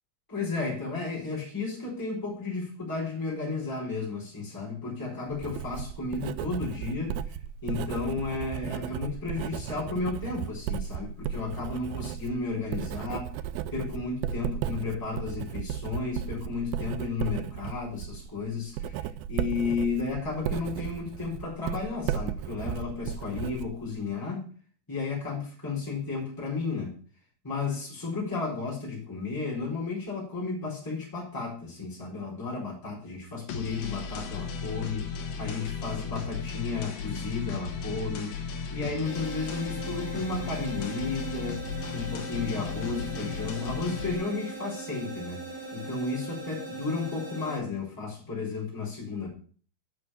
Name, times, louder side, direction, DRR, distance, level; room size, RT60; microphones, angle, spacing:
voice 1, 0.3-7.4 7.6-13.3 13.7-24.5 24.9-27.0 27.4-35.1 35.4-38.4 38.7-41.6 41.9-45.4 45.7-49.3, left 4 dB, 5° left, -5 dB, 4.0 m, -33 dB
Writing, 5.3-24.1, right 10 dB, 85° right, 2.4 m, -35 dB
sound 1, 33.5-44.1, left 6 dB, 70° left, 2.8 m, -36 dB
sound 2, 39.0-47.6, right 3 dB, 50° right, 4.3 m, -40 dB
8.1 x 6.1 x 7.0 m, 0.43 s
omnidirectional pair, 4.2 m